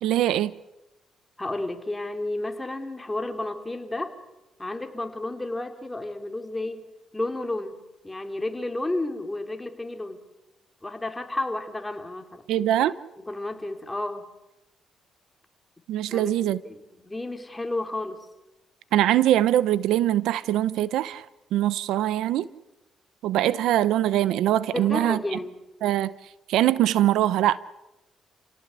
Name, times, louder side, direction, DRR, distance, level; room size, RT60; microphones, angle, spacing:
voice 1, 0.0-0.5 12.5-13.0 15.9-16.6 18.9-21.3 21.5-22.5 23.2-25.4 25.8-26.1 26.5-27.6, right 13 dB, 85° right, 0.8 m, -22 dB
voice 2, 1.4-4.1 4.6-6.8 7.1-7.8 8.0-10.2 10.8-12.4 13.2-14.3 16.1-18.3 24.7-25.5, left 2 dB, 15° left, 3.2 m, -32 dB
28.5 x 17.5 x 8.4 m
cardioid pair, 90°, 0 cm